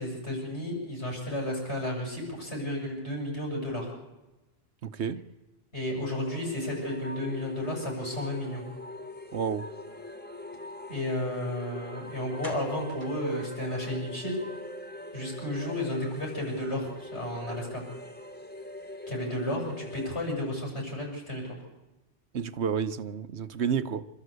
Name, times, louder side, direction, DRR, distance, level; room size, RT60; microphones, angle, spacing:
voice 1, 0.0-3.9 5.7-8.6 10.9-14.4 15.1-17.8 19.1-21.4, left 1 dB, 80° left, 7.8 m, -32 dB
voice 2, 4.8-5.2 9.3-9.7 22.3-24.1, right 7 dB, 80° right, 1.2 m, -30 dB
sound 1, 6.1-20.3, left 1 dB, 10° left, 1.5 m, -42 dB
sound 2, 11.7-11.8 12.4-14.2 14.5-14.6 15.0-15.2 15.4-15.5, left 1 dB, 45° left, 3.4 m, -47 dB
27.5 x 13.5 x 8.2 m
omnidirectional pair, 1.1 m